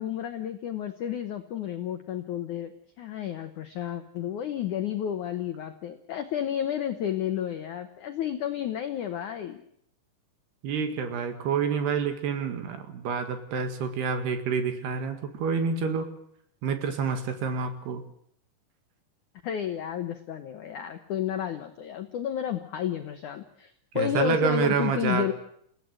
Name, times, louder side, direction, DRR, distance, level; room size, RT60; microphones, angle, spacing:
voice 1, 0.0-2.7 3.0-9.6 19.4-25.3, left 10 dB, 85° left, 7 dB, 1.7 m, -31 dB
voice 2, 10.6-16.1 16.6-18.0 24.0-25.3, right 6 dB, 65° right, 7 dB, 3.8 m, -28 dB
29.0 x 16.5 x 7.8 m, 0.69 s
omnidirectional pair, 5.3 m